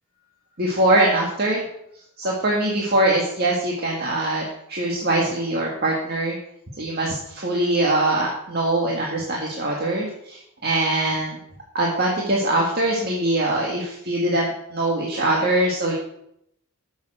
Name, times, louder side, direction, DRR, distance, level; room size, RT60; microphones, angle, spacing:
voice 1, 0.6-1.6 2.2-6.4 6.8-11.4 11.7-15.9, right 1 dB, 45° right, -2 dB, 1.8 m, -22 dB
10.5 x 7.3 x 6.4 m, 0.77 s
head